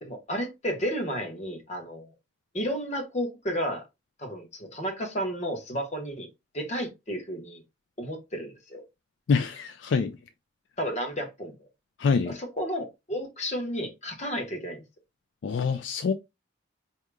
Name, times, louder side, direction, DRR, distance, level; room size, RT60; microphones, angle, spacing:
voice 1, 0.0-2.1 2.5-3.8 4.2-6.3 6.5-7.6 8.0-8.8 10.8-11.7 12.2-14.8, equal, 35° left, 1.1 m, -32 dB
voice 2, 9.3-10.2 12.0-12.4 15.4-16.1, left 5 dB, 65° left, 0.3 m, -25 dB
4.7 x 2.8 x 2.2 m
head